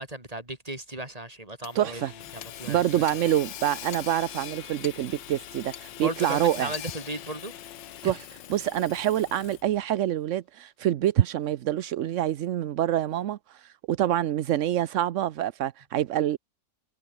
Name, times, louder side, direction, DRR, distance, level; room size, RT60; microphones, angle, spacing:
voice 1, 0.0-2.0 2.3-3.0 6.0-7.5 8.0-8.1, right 1 dB, 20° right, 4.1 m, -36 dB
Hammer / Sawing, 1.6-9.8, left 11 dB, 85° left, 1.7 m, -41 dB
voice 2, 1.7-2.1 2.7-6.7 8.0-8.2 8.5-16.4, right 12 dB, 65° right, 0.7 m, -26 dB
omnidirectional pair, 1.9 m